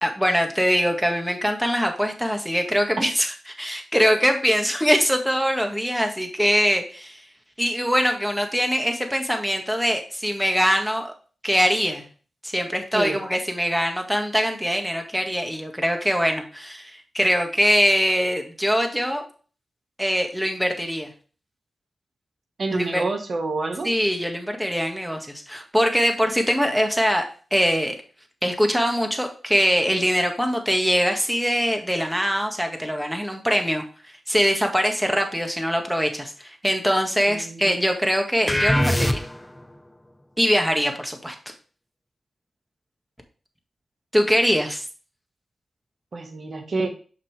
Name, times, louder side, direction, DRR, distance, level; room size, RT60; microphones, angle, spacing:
voice 1, 0.0-7.3 7.6-11.1 11.4-12.1 12.4-19.2 20.0-21.1 22.7-23.0 23.8-28.0 28.4-33.8 34.3-39.2 40.4-41.4 44.1-44.8, equal, 5° right, 4 dB, 1.8 m, -23 dB
voice 2, 22.6-23.9 37.3-37.8 46.1-46.9, right 3 dB, 65° right, 5 dB, 1.5 m, -28 dB
sound 1, 38.5-39.6, left 1 dB, 15° left, 0.6 m, -22 dB
6.4 x 5.7 x 3.4 m, 0.39 s
cardioid pair, 45°, 0 cm